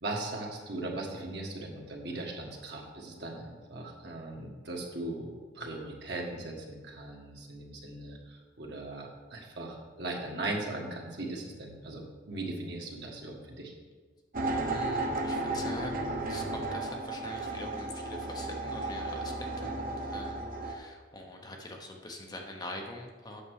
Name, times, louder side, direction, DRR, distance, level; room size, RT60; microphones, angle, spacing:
voice 1, 0.0-13.7, right 2 dB, 65° right, -1 dB, 1.6 m, -39 dB
sound 1, 14.3-20.7, right 2 dB, 50° right, 0.9 m, -34 dB
voice 2, 14.7-23.4, left 1 dB, 25° left, 1 dB, 0.9 m, -44 dB
8.5 x 6.6 x 4.8 m, 1.4 s
head